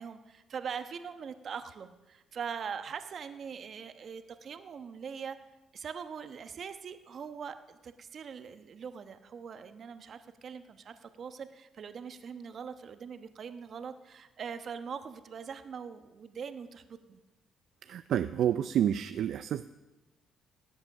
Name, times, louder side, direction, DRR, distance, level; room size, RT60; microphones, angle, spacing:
voice 1, 0.0-5.4 5.7-17.2, right 6 dB, 55° right, 9 dB, 1.1 m, -42 dB
voice 2, 17.8-19.7, right 10 dB, 70° right, 11 dB, 0.4 m, -29 dB
18.0 x 8.0 x 6.6 m, 1.1 s
cardioid pair, 85°, 0 cm